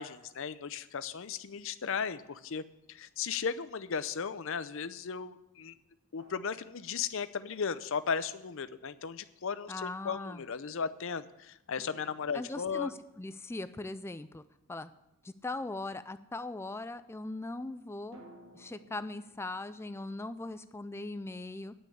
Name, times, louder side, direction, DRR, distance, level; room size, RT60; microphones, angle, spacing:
voice 1, 0.0-2.6 2.9-5.7 6.1-12.9, left 6 dB, 60° left, 14 dB, 0.6 m, -36 dB
sound 1, 2.7-2.8 6.2-7.7 11.8-15.4 18.1-20.9, right 1 dB, 60° right, 2.1 m, -59 dB
voice 2, 9.7-10.4 12.3-14.4 14.7-14.9 15.2-18.2 18.5-21.7, left 2 dB, 10° left, 12 dB, 0.3 m, -40 dB
9.9 x 6.2 x 8.6 m, 0.89 s
head